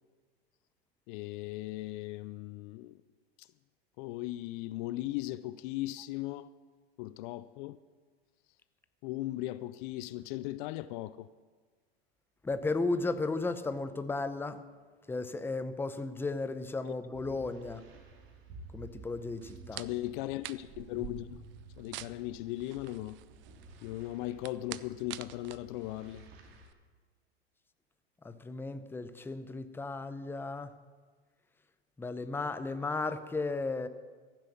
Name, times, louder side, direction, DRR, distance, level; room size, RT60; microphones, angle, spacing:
voice 1, 1.1-3.0 3.4-3.5 4.0-6.5 7.0-7.8 9.0-11.3 16.9-17.0 19.7-21.4 21.8-23.2 23.8-26.3, left 16 dB, 55° left, 0.5 m, -38 dB
voice 2, 12.4-14.6 15.1-17.9 18.7-19.8 28.2-30.7 32.0-33.9, left 3 dB, 5° left, 0.7 m, -34 dB
sound 1, 17.1-26.7, right 2 dB, 65° right, 2.5 m, -53 dB
sound 2, 19.4-26.7, right 16 dB, 40° right, 0.5 m, -48 dB
15.0 x 7.6 x 7.1 m
hypercardioid pair, 100°, 32 cm